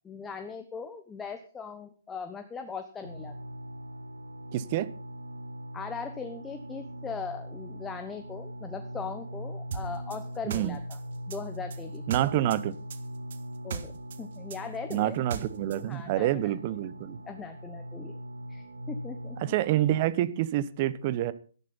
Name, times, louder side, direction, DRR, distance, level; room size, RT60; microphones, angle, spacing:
voice 1, 0.0-3.4 5.7-11.0 11.3-12.0 13.6-15.2 15.9-16.5 17.2-18.2 18.5-19.5, left 5 dB, 10° left, 7 dB, 1.1 m, -39 dB
sound 1, 3.0-20.1, equal, 85° right, 2.6 m, -41 dB
voice 2, 4.5-4.9 10.5-10.8 12.1-12.8 14.9-17.2 19.4-21.3, right 13 dB, 35° right, 16 dB, 1.0 m, -27 dB
sound 2, 9.7-12.6 12.9-15.8, right 6 dB, 55° right, 1.7 m, -38 dB
13.5 x 11.0 x 5.6 m, 0.41 s
hypercardioid pair, 140°, 0 cm